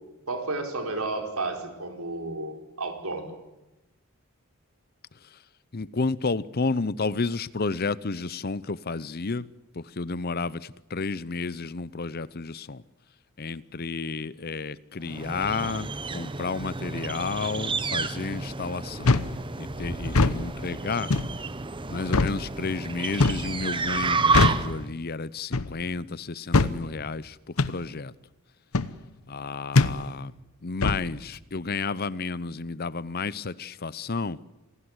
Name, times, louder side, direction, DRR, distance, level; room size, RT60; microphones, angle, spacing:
voice 1, 0.0-3.3, right 2 dB, 75° right, 4.8 m, -32 dB
voice 2, 5.7-9.5 9.7-12.8 13.4-19.2 19.6-21.1 21.9-28.1 29.3-30.3 30.6-34.4, left 4 dB, 45° left, 0.7 m, -31 dB
sound 1, 15.1-24.9, right 4 dB, 20° right, 0.9 m, -30 dB
sound 2, 19.1-19.4 20.1-20.4 21.1-21.3 22.1-22.4 23.2-23.5 24.3-24.7 25.5-25.8 26.5-26.8 27.6-27.8 28.7-28.9 29.8-30.0 30.8-31.1, left 3 dB, 75° left, 1.0 m, -21 dB
27.0 x 18.5 x 8.1 m
head